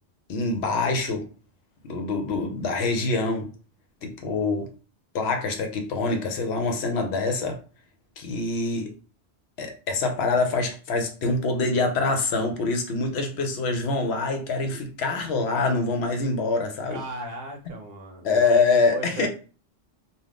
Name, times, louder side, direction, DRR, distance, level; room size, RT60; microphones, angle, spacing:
voice 1, 0.3-1.3 1.8-3.5 4.0-4.7 5.1-7.6 8.2-8.9 9.6-17.0 18.2-19.3, left 3 dB, 70° left, 4 dB, 0.8 m, -25 dB
voice 2, 16.9-18.4 18.8-19.3, right 2 dB, 60° right, 1 dB, 0.8 m, -36 dB
2.4 x 2.3 x 3.3 m, 0.37 s
omnidirectional pair, 1.2 m